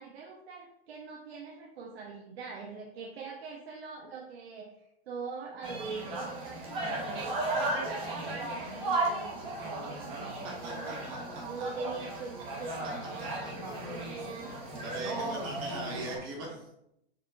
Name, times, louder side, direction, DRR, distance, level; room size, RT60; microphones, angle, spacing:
voice 1, 0.0-4.7 5.1-11.0 11.5-15.6 16.5-16.6, right 4 dB, 80° right, 0 dB, 0.7 m, -43 dB
sound 1, 5.6-16.2, right 2 dB, 20° right, 0.6 m, -35 dB
voice 2, 10.6-11.4 13.4-13.5 14.8-16.6, right 2 dB, 35° right, -1 dB, 1.0 m, -40 dB
4.6 x 3.0 x 2.5 m, 0.80 s
supercardioid pair, 160°, 31 cm